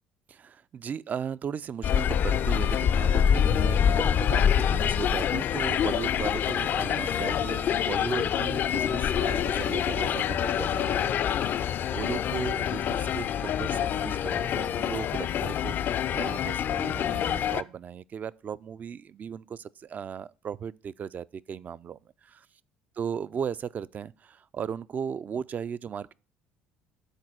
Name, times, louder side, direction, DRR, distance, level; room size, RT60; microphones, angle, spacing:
voice 1, 0.3-22.1 23.0-26.1, right 7 dB, 40° right, 0.3 m, -36 dB
sound 1, 1.8-17.6, left 9 dB, 55° left, 0.4 m, -26 dB
6.5 x 4.1 x 6.0 m
hypercardioid pair, 60°, 4 cm